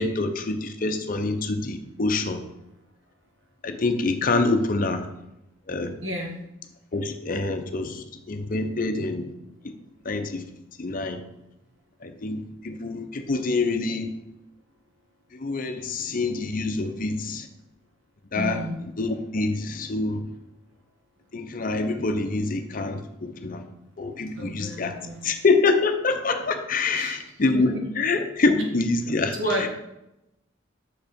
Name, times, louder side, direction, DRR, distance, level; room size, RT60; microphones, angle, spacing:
voice 1, 0.0-2.4 3.6-5.1 5.7-5.9 6.9-9.3 9.6-9.7 10.0-10.4 10.8-11.2 12.0-14.1 15.3-17.5 18.3-18.6 19.0-20.2 21.3-23.6 24.0-24.9 25.2-29.3 29.6-29.7, left 3 dB, 45° left, 7 dB, 0.6 m, -26 dB
voice 2, 6.0-6.3 18.3-18.8 24.3-25.3 26.8-27.2 27.5-27.6 29.3-29.7, equal, 70° right, 0 dB, 1.7 m, -31 dB
6.5 x 4.8 x 5.2 m, 0.87 s
head